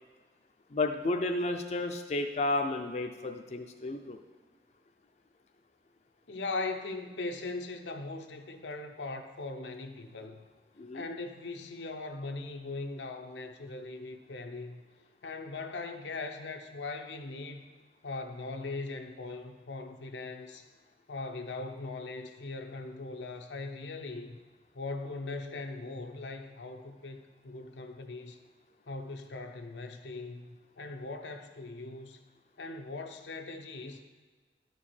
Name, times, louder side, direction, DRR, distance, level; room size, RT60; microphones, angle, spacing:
voice 1, 0.7-4.2 10.8-11.0, left 2 dB, 40° left, 4 dB, 0.4 m, -32 dB
voice 2, 6.3-10.4 10.9-14.8 15.2-17.6 18.0-20.7 21.1-24.4 24.7-28.4 28.9-32.2 32.6-34.0, left 3 dB, 90° left, 5 dB, 0.7 m, -40 dB
11.5 x 4.7 x 4.3 m, 1.4 s
head